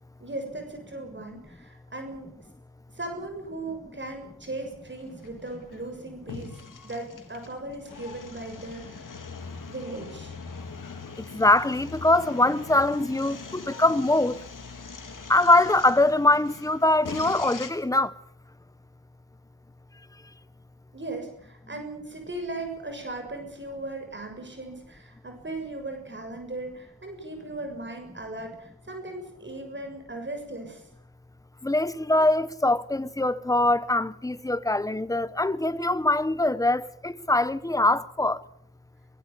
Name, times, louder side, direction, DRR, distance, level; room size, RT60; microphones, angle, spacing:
voice 1, 0.2-2.4 2.9-9.1 9.7-10.3 20.9-30.8, right 2 dB, 30° right, 6.7 m, -37 dB
sound 1, 4.6-17.7, left 4 dB, 55° left, 3.9 m, -42 dB
voice 2, 11.2-14.4 15.3-18.2 31.6-38.4, left 2 dB, 10° left, 1.0 m, -23 dB
23.0 x 21.5 x 7.1 m
wide cardioid pair, 115°, 39 cm